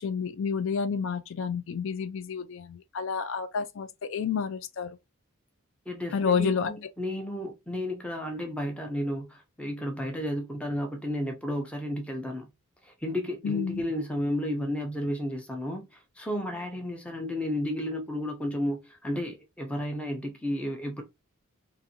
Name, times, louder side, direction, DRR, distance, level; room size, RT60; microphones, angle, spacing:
voice 1, 0.0-5.0 6.1-6.7 13.4-13.8, left 6 dB, 60° left, 0.4 m, -30 dB
voice 2, 5.9-12.5 12.8-15.8 16.2-21.0, equal, 5° left, 0.6 m, -32 dB
2.5 x 2.5 x 2.8 m
head